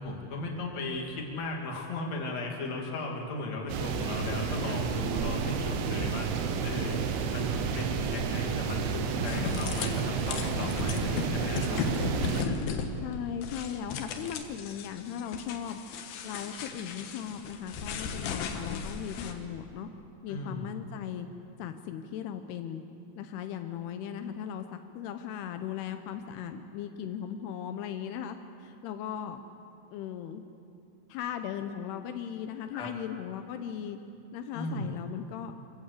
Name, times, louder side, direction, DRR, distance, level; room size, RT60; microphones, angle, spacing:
voice 1, 0.0-6.3 6.6-7.0 7.3-12.2 20.3-20.8 32.7-32.9 34.5-34.9, left 2 dB, 40° left, 0 dB, 2.9 m, -36 dB
sound 1, 3.7-12.4, right 6 dB, 80° right, 3.6 m, -31 dB
sound 2, 9.2-19.3, left 5 dB, 70° left, 2.4 m, -36 dB
voice 2, 13.0-15.8 16.2-19.9 20.2-21.3 21.6-22.8 23.2-29.4 29.9-30.4 31.1-34.0 34.3-35.5, left 9 dB, 90° left, 7 dB, 2.3 m, -37 dB
26.0 x 14.5 x 8.3 m, 2.7 s
omnidirectional pair, 5.7 m